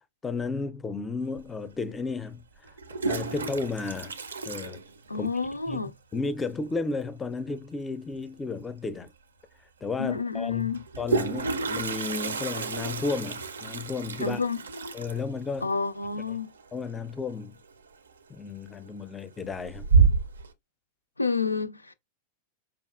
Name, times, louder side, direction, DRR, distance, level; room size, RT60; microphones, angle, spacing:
voice 1, 0.2-2.4 3.0-4.2 4.4-4.8 5.1-5.3 5.7-9.1 9.8-10.7 11.0-14.4 14.9-15.7 16.3-16.4 16.7-17.6 18.3-19.8, left 4 dB, 15° left, 0.4 m, -33 dB
Toilet flush, 1.4-1.5 2.7-5.5 5.7-5.8 6.1-6.2 6.5-6.9 8.6-8.7 9.1-9.2 10.7-17.4 17.7-18.1 18.6-19.1 19.5-20.5, right 4 dB, 70° right, 0.5 m, -29 dB
voice 2, 5.1-5.9 10.0-10.8 14.2-14.6 15.6-16.5 21.2-21.9, left 4 dB, 80° left, 0.4 m, -29 dB
5.2 x 2.3 x 2.3 m
figure-of-eight pair, 90°, 0 cm